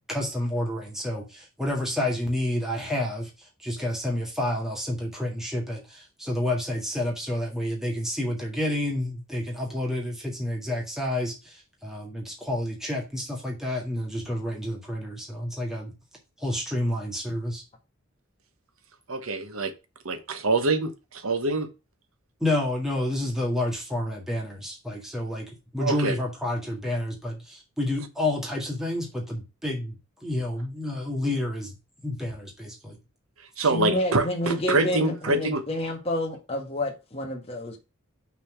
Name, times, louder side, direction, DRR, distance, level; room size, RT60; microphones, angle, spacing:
voice 1, 0.1-15.9 16.4-17.6 22.4-31.7 32.0-33.0 33.6-33.7, left 1 dB, ahead, 1.8 m, -29 dB
voice 2, 19.1-19.7 20.0-21.7 25.8-26.1 33.6-35.6, right 2 dB, 80° right, 1.2 m, -25 dB
voice 3, 33.6-37.8, left 1 dB, 30° left, 1.9 m, -29 dB
6.0 x 4.2 x 5.9 m
head